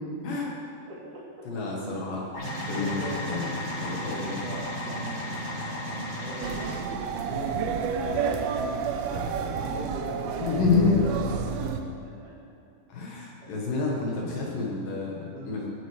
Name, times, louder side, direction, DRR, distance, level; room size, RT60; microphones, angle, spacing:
voice 1, 0.9-1.5 1.7-2.1 2.6-6.6 7.0-8.8 9.0-10.9 11.2-11.3 11.8-12.3 13.4-13.5 14.2-14.4 15.3-15.7, right 2 dB, 35° right, -7 dB, 3.0 m, -39 dB
voice 2, 1.5-2.2 2.7-3.5 3.8-4.4 10.4-11.0 12.9-15.7, left 4 dB, 65° left, -2 dB, 2.3 m, -28 dB
sound 1, 2.3-6.7, left 1 dB, 35° left, 3.3 m, -34 dB
sound 2, 6.4-11.8, right 6 dB, 85° right, 2.2 m, -30 dB
18.0 x 9.0 x 3.3 m, 2.5 s
omnidirectional pair, 5.3 m